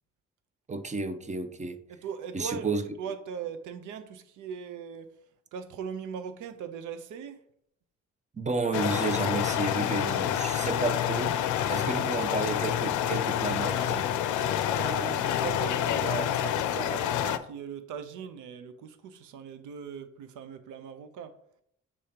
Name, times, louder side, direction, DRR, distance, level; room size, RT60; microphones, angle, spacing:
voice 1, 0.7-1.8 2.3-2.8 8.3-11.4 11.7-14.1, right 3 dB, 25° right, 0.7 m, -31 dB
voice 2, 2.0-2.7 3.0-5.1 5.5-7.4 14.8-21.4, right 7 dB, 80° right, 0.7 m, -39 dB
sound 1, 8.7-17.4, left 10 dB, 75° left, 0.5 m, -28 dB
6.8 x 2.8 x 5.0 m
cardioid pair, 90°, 30 cm